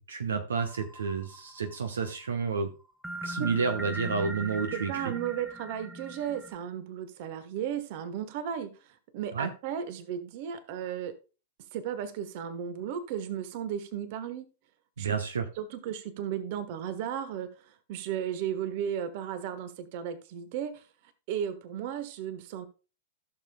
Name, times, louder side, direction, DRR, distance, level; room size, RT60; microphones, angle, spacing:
voice 1, 0.0-2.7 3.2-5.1 9.3-9.5 15.0-15.4, right 5 dB, 70° right, 1.0 m, -30 dB
sound 1, 0.6-1.9 3.0-6.5, right 1 dB, 5° right, 1.2 m, -39 dB
voice 2, 4.7-11.2 11.7-14.4 15.0-15.1 15.6-20.8 21.3-22.7, right 9 dB, 45° right, 1.3 m, -35 dB
15.0 x 6.9 x 2.3 m
figure-of-eight pair, 100°, 0 cm